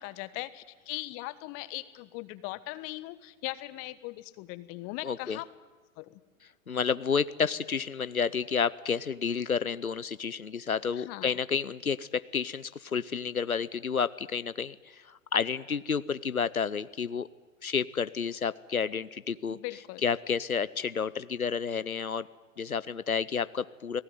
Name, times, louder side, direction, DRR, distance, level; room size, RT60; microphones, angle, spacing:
voice 1, 0.0-5.4 6.0-6.2 11.0-11.3 19.5-20.0, left 19 dB, 35° left, 14 dB, 1.3 m, -39 dB
voice 2, 5.0-5.4 6.7-17.3 17.6-19.6 20.0-22.3 22.6-24.0, left 6 dB, 90° left, 16 dB, 0.8 m, -30 dB
30.0 x 19.5 x 9.5 m, 1.3 s
figure-of-eight pair, 105°, 42 cm